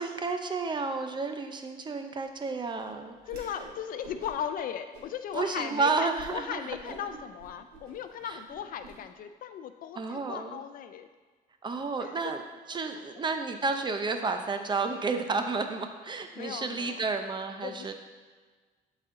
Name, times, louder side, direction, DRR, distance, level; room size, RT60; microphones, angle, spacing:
voice 1, 0.0-3.2 5.3-6.6 8.2-8.4 10.0-10.6 11.6-12.4 12.7-17.9, right 4 dB, 25° right, 6 dB, 0.7 m, -31 dB
Whoosh swoosh swish, 3.2-3.7 4.0-4.5 4.9-5.4 5.8-5.9 6.2-6.4 6.7-8.9, right 2 dB, 70° right, 2.3 m, -48 dB
voice 2, 3.3-11.1 12.0-12.3 16.3-17.0 17.6-17.9, left 9 dB, 55° left, 9 dB, 0.4 m, -37 dB
12.0 x 4.2 x 3.8 m, 1.4 s
cardioid pair, 110°, 17 cm